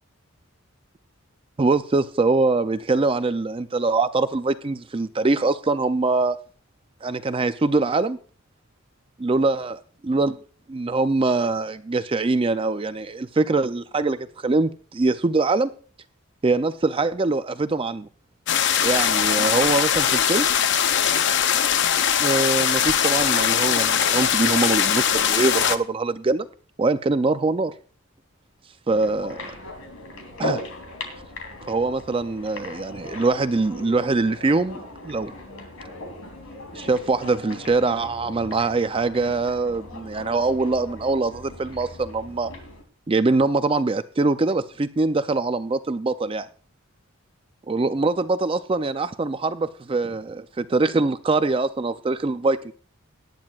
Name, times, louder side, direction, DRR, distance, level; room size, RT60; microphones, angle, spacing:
voice 1, 1.6-6.4 7.0-8.2 9.2-9.8 10.0-10.4 10.7-15.7 16.4-18.1 18.8-20.5 22.2-26.5 26.8-27.7 28.9-29.5 30.4-30.6 31.7-35.3 36.7-42.5 43.1-46.5 47.7-52.7, right 3 dB, 25° right, 0.4 m, -23 dB
sound 1, 18.5-25.8, left 8 dB, 55° left, 0.6 m, -21 dB
sound 2, 28.9-42.8, left 1 dB, 80° left, 2.7 m, -38 dB
18.0 x 10.5 x 2.4 m
head